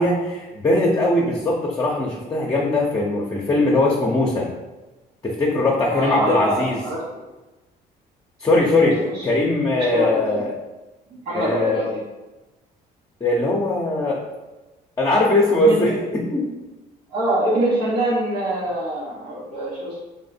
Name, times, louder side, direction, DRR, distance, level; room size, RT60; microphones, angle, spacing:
voice 1, 0.0-4.5 5.2-6.8 8.4-10.5 11.3-11.8 13.2-14.2 15.0-16.5, left 2 dB, 20° left, -2 dB, 0.7 m, -20 dB
voice 2, 5.9-7.0 8.8-9.3 9.7-10.4 11.1-12.0 15.5-15.8 17.1-20.0, right 1 dB, 80° right, -7 dB, 1.3 m, -24 dB
3.5 x 3.2 x 4.2 m, 1.1 s
cardioid pair, 110°, 17 cm